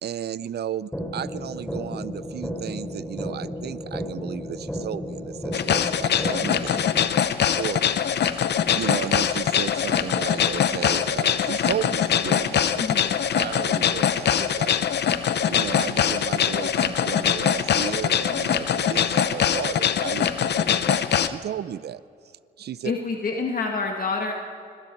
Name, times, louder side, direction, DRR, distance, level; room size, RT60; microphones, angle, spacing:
voice 1, 0.0-6.8 7.6-8.1 8.3-8.5 8.7-12.8 13.3-14.8 15.5-22.0 22.6-22.9, right 10 dB, 65° right, 17 dB, 0.6 m, -34 dB
sound 1, 0.9-6.9, equal, 5° left, 3.3 m, -33 dB
sound 2, 5.5-21.3, left 8 dB, 70° left, 0.8 m, -23 dB
voice 2, 12.8-13.2 20.7-20.9 22.8-24.3, left 4 dB, 50° left, 1 dB, 1.8 m, -28 dB
25.5 x 22.0 x 4.6 m, 2.3 s
cardioid pair, 85°, 18 cm